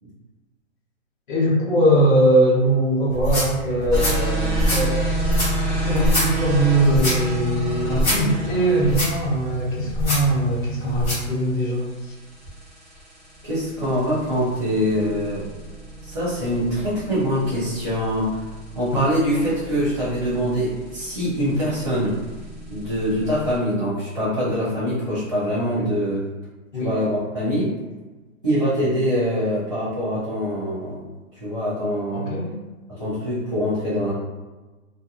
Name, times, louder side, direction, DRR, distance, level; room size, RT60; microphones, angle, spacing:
voice 1, 1.3-5.2 5.7-12.1 26.7-26.9 32.1-32.5, right 1 dB, 40° left, -6 dB, 0.7 m, -21 dB
sound 1, 3.1-11.3, equal, 10° left, 1.0 m, -26 dB
sound 2, 3.9-23.6, right 2 dB, 10° right, 0.9 m, -30 dB
voice 2, 13.4-15.4 16.0-18.4 18.7-22.2 22.7-26.2 26.7-27.7 28.4-31.0 31.4-32.3 32.9-34.1, equal, 25° right, -14 dB, 0.4 m, -24 dB
2.7 x 2.4 x 2.3 m, 1.2 s
hypercardioid pair, 175°, 40 cm